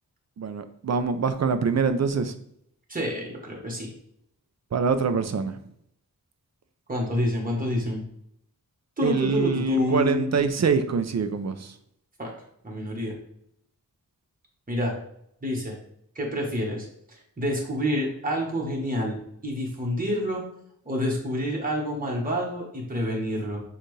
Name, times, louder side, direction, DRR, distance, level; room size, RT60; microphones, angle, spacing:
voice 1, 0.4-2.3 4.7-5.6 9.0-11.7, right 5 dB, 50° right, 9 dB, 0.5 m, -25 dB
voice 2, 2.9-3.9 6.9-8.0 9.0-10.5 12.2-12.3 12.6-13.2 14.7-14.9 15.4-15.7 16.1-16.9 17.4-20.4 20.8-23.6, equal, 25° right, -2 dB, 1.3 m, -28 dB
6.6 x 2.5 x 3.2 m, 0.72 s
wide cardioid pair, 95°, 35 cm